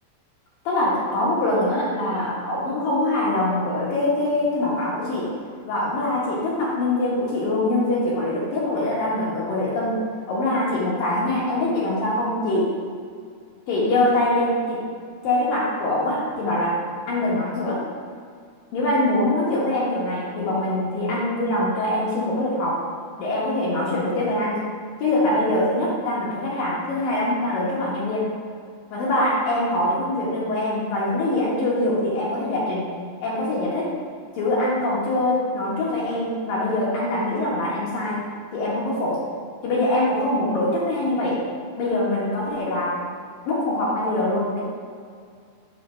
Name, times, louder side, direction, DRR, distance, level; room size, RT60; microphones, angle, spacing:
voice 1, 0.6-5.3 5.6-10.0 10.3-12.8 13.7-14.8 15.2-16.8 17.1-17.8 18.7-22.8 23.2-24.7 25.0-28.3 28.9-32.9 33.2-34.0 34.3-39.2 39.6-41.4 41.8-43.0 43.5-44.6, left 1 dB, 65° left, -6 dB, 2.7 m, -23 dB
7.5 x 3.8 x 6.2 m, 2.2 s
omnidirectional pair, 4.9 m